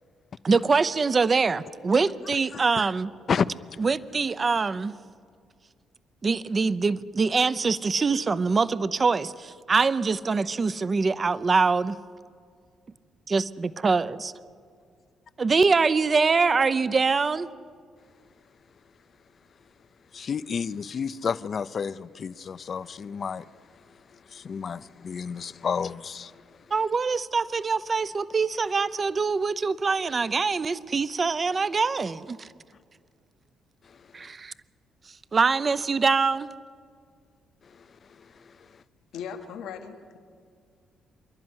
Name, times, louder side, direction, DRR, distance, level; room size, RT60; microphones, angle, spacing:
voice 1, 0.4-3.1 3.8-4.9 6.2-12.0 13.3-14.3 15.4-17.5 26.7-32.5 34.1-34.5 35.3-36.5, right 4 dB, 35° right, 0.6 m, -24 dB
voice 2, 20.1-23.4 24.3-26.3, left 6 dB, 50° left, 0.6 m, -30 dB
voice 3, 39.1-40.2, left 7 dB, 85° left, 1.6 m, -38 dB
27.5 x 11.5 x 9.7 m
cardioid pair, 90°, 0 cm